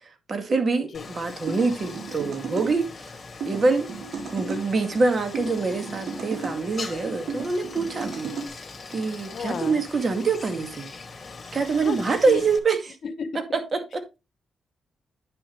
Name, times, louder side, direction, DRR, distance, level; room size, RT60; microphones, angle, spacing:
voice 1, 0.0-3.1 3.5-3.9 4.3-10.9 11.5-13.0 13.3-14.1, right 4 dB, 45° right, 2.1 m, -25 dB
Stream, 0.9-12.6, left 4 dB, 40° left, 2.5 m, -41 dB
sound 1, 1.5-2.7 3.4-4.6 5.3-6.6 7.3-8.5, right 4 dB, 70° right, 3.6 m, -34 dB
voice 2, 9.3-9.8 11.8-12.0 12.3-12.4 13.0-13.4, left 5 dB, 65° left, 1.0 m, -31 dB
10.0 x 6.1 x 3.3 m
supercardioid pair, 60°, 0 cm